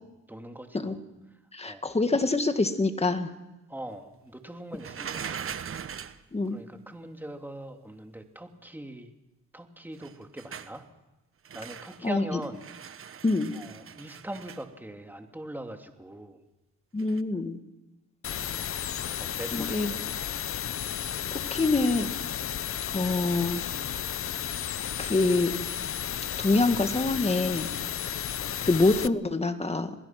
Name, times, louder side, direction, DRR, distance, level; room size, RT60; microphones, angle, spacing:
voice 1, 0.3-1.0 1.6-1.8 3.7-5.5 6.5-9.1 9.5-10.8 11.5-12.6 13.5-16.4 19.2-20.0, right 1 dB, 5° right, 4 dB, 2.9 m, -41 dB
voice 2, 1.5-3.3 6.3-6.6 12.0-12.4 13.2-13.5 16.9-17.6 19.5-19.9 21.3-22.1 22.9-23.6 25.0-25.6 26.4-27.7 28.6-30.0, left 3 dB, 20° left, 8 dB, 2.2 m, -25 dB
sound 1, 4.8-6.2 10.0-10.8 11.4-12.1 12.4-14.7 17.0-17.2, right 7 dB, 45° right, 1.3 m, -40 dB
sound 2, 18.2-29.1, left 9 dB, 45° left, 0.8 m, -33 dB
27.5 x 21.0 x 6.1 m, 1.0 s
cardioid pair, 90°, 30 cm